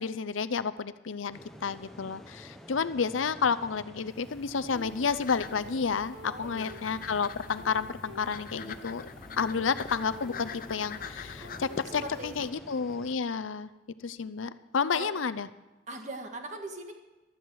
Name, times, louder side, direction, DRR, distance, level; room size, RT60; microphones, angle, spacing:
voice 1, 0.0-9.0 9.4-13.7 14.0-15.5, left 5 dB, 90° left, 13 dB, 0.6 m, -31 dB
sound 1, 1.3-13.2, equal, ahead, 0.8 m, -51 dB
sound 2, 4.1-12.5, left 5 dB, 45° left, 0.6 m, -44 dB
sound 3, 4.7-12.4, left 1 dB, 70° right, 2.2 m, -49 dB
voice 2, 6.2-7.2 9.3-9.6 11.8-12.8 14.9-15.1 15.9-16.9, right 2 dB, 40° right, 4 dB, 1.7 m, -42 dB
15.0 x 12.5 x 4.8 m, 1.1 s
head